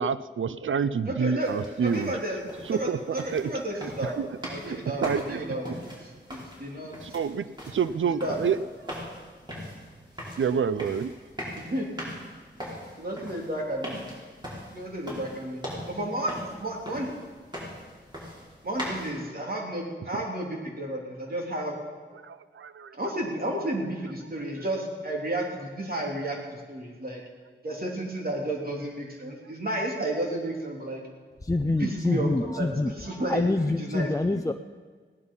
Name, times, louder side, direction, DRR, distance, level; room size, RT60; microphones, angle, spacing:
voice 1, 0.0-2.1 2.6-4.3 4.6-5.6 6.7-8.6 10.4-11.1 20.1-20.2 22.2-23.0, right 6 dB, 85° right, 15 dB, 0.5 m, -29 dB
voice 2, 1.0-1.5 1.8-2.4 2.7-4.1 4.5-5.9 6.3-6.9 8.2-8.4 11.6-11.9 13.0-14.0 14.7-15.6 15.9-17.1 18.6-21.8 22.9-27.2 27.6-31.0 31.8-34.1, right 1 dB, 50° right, -1 dB, 3.3 m, -32 dB
sound 1, 1.4-19.1, equal, 20° right, 5.2 m, -41 dB
voice 3, 31.4-34.5, left 2 dB, 15° left, 7 dB, 0.5 m, -26 dB
17.0 x 11.0 x 5.6 m, 1.5 s
wide cardioid pair, 60°, 20 cm